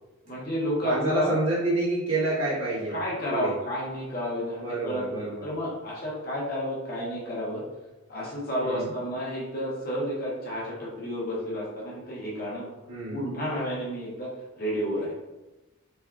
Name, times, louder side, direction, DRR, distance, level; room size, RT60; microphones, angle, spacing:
voice 1, 0.3-1.3 2.9-7.6 8.1-12.7 13.1-14.3 14.6-15.1, equal, 45° left, -6 dB, 0.7 m, -31 dB
voice 2, 0.8-3.0 3.3-3.5 4.6-5.5 8.6-8.9 12.9-13.2, right 2 dB, 80° right, -7 dB, 1.2 m, -28 dB
3.4 x 2.3 x 2.3 m, 1.1 s
head